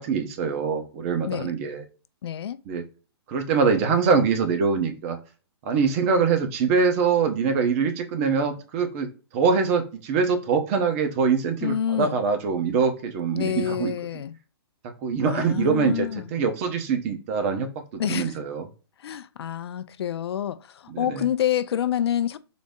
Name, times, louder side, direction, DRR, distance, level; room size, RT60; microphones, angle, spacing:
voice 1, 0.0-1.8 2.7-2.8 3.3-5.2 5.6-13.9 15.0-17.7 17.9-18.7 20.9-21.2, right 5 dB, 35° right, 0.8 m, -24 dB
voice 2, 2.2-2.6 11.6-12.2 13.3-14.4 15.2-16.3 18.0-18.4 19.0-22.4, left 10 dB, 70° left, 0.4 m, -27 dB
3.9 x 2.0 x 3.6 m
hypercardioid pair, 145°, 14 cm